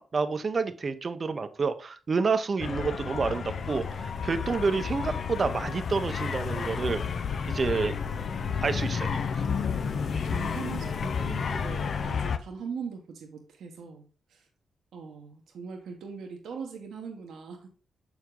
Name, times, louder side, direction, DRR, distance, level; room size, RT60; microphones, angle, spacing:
voice 1, 0.0-7.0 7.5-8.0 8.6-9.4, right 4 dB, 50° right, 0.7 m, -29 dB
sound 1, 2.6-12.4, left 6 dB, 60° left, 0.6 m, -31 dB
voice 2, 9.7-14.0 14.3-14.5 14.9-17.7, right 5 dB, 75° right, 1.0 m, -40 dB
6.3 x 4.7 x 3.7 m
supercardioid pair, 50°, 0 cm